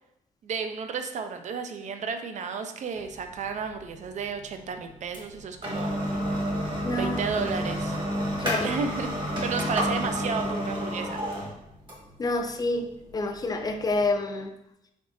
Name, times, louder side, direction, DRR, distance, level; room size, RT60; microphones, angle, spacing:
voice 1, 0.4-6.0 7.0-8.0 8.6-11.2, right 5 dB, 60° right, 7 dB, 0.4 m, -32 dB
sound 1, 3.0-14.1, equal, 35° right, 1.3 m, -31 dB
voice 2, 6.8-7.3 8.4-8.7 12.2-14.5, left 2 dB, 30° left, 5 dB, 0.4 m, -28 dB
3.8 x 3.5 x 2.6 m, 0.84 s
cardioid pair, 100°, 14 cm